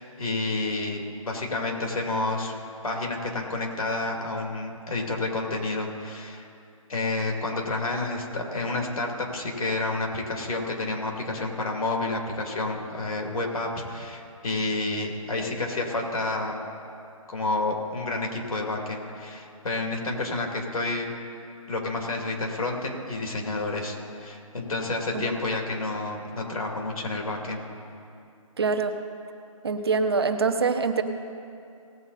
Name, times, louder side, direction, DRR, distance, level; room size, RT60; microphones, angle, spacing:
voice 1, 0.0-2.5 2.8-6.5 6.9-16.7 17.3-21.1 21.7-27.7, left 2 dB, 75° left, 1 dB, 2.7 m, -30 dB
voice 2, 28.6-28.9 29.6-31.0, right 4 dB, 45° right, 8 dB, 0.8 m, -24 dB
18.5 x 7.9 x 4.1 m, 2.5 s
hypercardioid pair, 175°, 18 cm